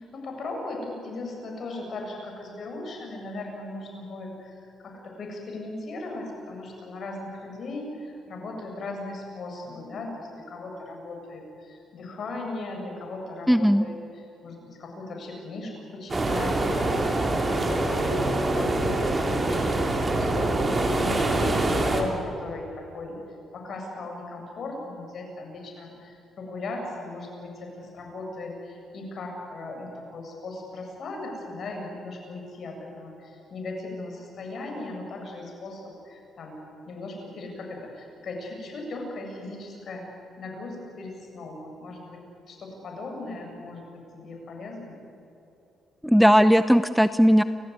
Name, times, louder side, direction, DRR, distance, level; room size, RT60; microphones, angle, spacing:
voice 1, 0.0-23.2 23.5-36.6 36.9-40.1 40.4-45.0, left 2 dB, 55° left, 1 dB, 7.7 m, -37 dB
voice 2, 13.5-13.9 46.0-47.4, equal, ahead, 12 dB, 0.7 m, -17 dB
sound 1, 16.1-22.0, right 2 dB, 25° right, 3.8 m, -25 dB
30.0 x 15.5 x 9.6 m, 2.8 s
cardioid pair, 90°, 0 cm